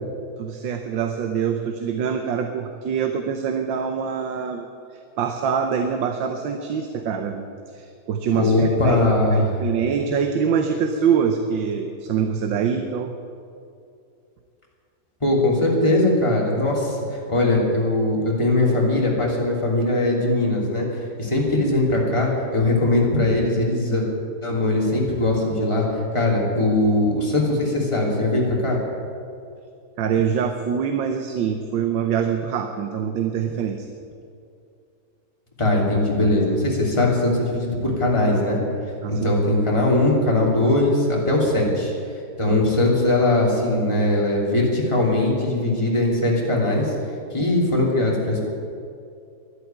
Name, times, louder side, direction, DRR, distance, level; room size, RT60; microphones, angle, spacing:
voice 1, 0.4-4.7 4.9-13.1 30.0-33.9 39.0-39.3 42.5-42.6, right 7 dB, 85° right, 6 dB, 1.6 m, -24 dB
voice 2, 8.3-9.6 15.2-24.0 24.4-28.8 35.6-38.6 39.1-41.9 42.4-46.9 47.3-48.5, left 2 dB, 15° left, -3 dB, 3.0 m, -20 dB
11.5 x 11.5 x 9.1 m, 2.5 s
omnidirectional pair, 2.0 m